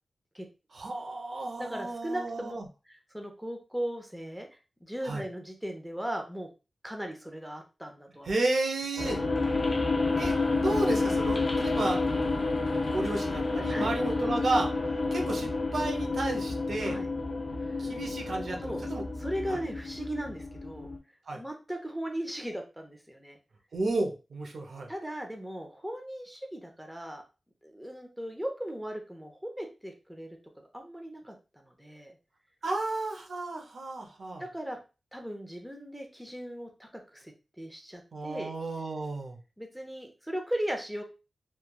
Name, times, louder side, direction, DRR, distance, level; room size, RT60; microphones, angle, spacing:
voice 1, 0.7-2.6 5.0-5.2 8.3-9.2 10.2-12.0 12.8-14.7 15.1-17.0 17.8-19.0 19.5-19.6 21.3-21.4 23.7-24.9 32.6-34.4 38.1-39.4, right 2 dB, 75° right, 2 dB, 0.6 m, -32 dB
voice 2, 1.6-2.6 2.9-4.5 4.8-6.5 6.8-8.3 9.1-9.2 11.8-11.9 13.7-13.9 16.8-17.1 17.6-17.8 18.6-18.9 19.2-20.9 21.3-23.4 24.9-27.2 27.6-30.4 30.7-32.1 34.4-34.8 35.1-38.5 39.6-41.0, equal, 5° right, 3 dB, 0.6 m, -37 dB
sound 1, 9.0-21.0, left 3 dB, 45° left, 0.6 m, -30 dB
3.1 x 2.3 x 2.2 m, 0.30 s
wide cardioid pair, 70°, 0 cm